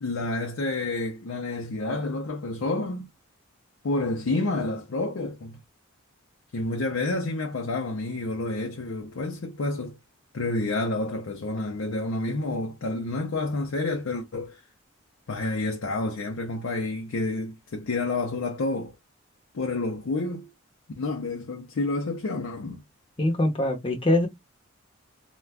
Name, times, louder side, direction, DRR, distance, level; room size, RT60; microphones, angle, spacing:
voice 1, 0.0-3.1 3.8-5.6 6.5-10.0 10.3-14.6 15.3-18.9 19.5-20.5 21.0-22.8, left 2 dB, 70° left, 0.5 m, -29 dB
voice 2, 23.2-24.3, left 1 dB, 25° left, 0.7 m, -23 dB
2.4 x 2.2 x 3.3 m
head